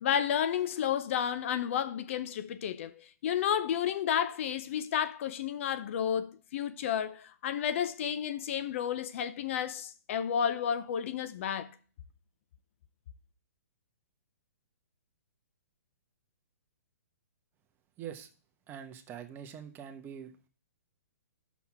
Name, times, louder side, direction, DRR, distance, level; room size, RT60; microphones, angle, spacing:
voice 1, 0.0-11.7, left 9 dB, 50° left, 0.7 m, -31 dB
voice 2, 18.0-18.3 18.7-20.5, right 8 dB, 25° right, 1.0 m, -44 dB
6.2 x 5.7 x 7.0 m
hypercardioid pair, 135°, 9 cm